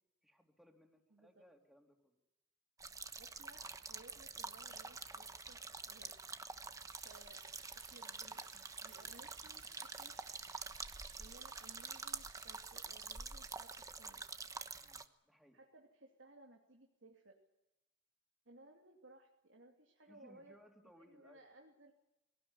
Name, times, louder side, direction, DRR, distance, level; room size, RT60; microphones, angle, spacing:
voice 1, 0.2-2.2 14.8-15.6 20.0-21.5, equal, ahead, 3 dB, 3.1 m, -65 dB
sound 1, 2.8-15.0, right 4 dB, 20° right, 1.1 m, -47 dB
voice 2, 3.2-5.6 5.9-6.1 7.0-7.4 7.8-10.1 11.2-14.2 15.5-17.4 18.5-20.6 20.8-21.9, right 2 dB, 90° right, 2 dB, 2.7 m, -61 dB
sound 2, 6.9-14.1, right 10 dB, 70° right, 1.9 m, -63 dB
22.0 x 18.0 x 9.7 m, 0.91 s
head